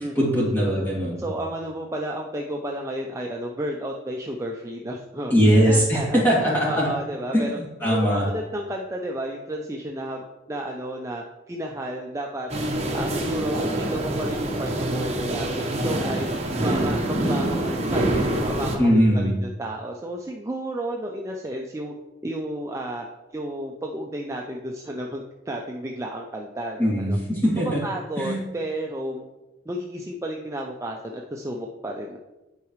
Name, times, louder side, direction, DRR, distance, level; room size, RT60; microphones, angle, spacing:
voice 1, 0.1-1.2 5.3-6.9 7.3-8.3 18.8-19.3 26.8-27.8 28.2-28.4, equal, 10° left, -6 dB, 2.3 m, -21 dB
voice 2, 1.2-5.3 5.6-7.6 7.9-8.1 8.3-12.5 12.9-15.5 15.8-16.3 16.6-19.3 19.6-21.9 22.2-23.1 23.3-27.2 27.8-29.2 29.7-32.2, right 1 dB, 15° right, 0 dB, 0.4 m, -32 dB
sound 1, 12.5-18.8, right 1 dB, 35° right, 0.9 m, -25 dB
10.5 x 4.8 x 3.1 m, 1.1 s
head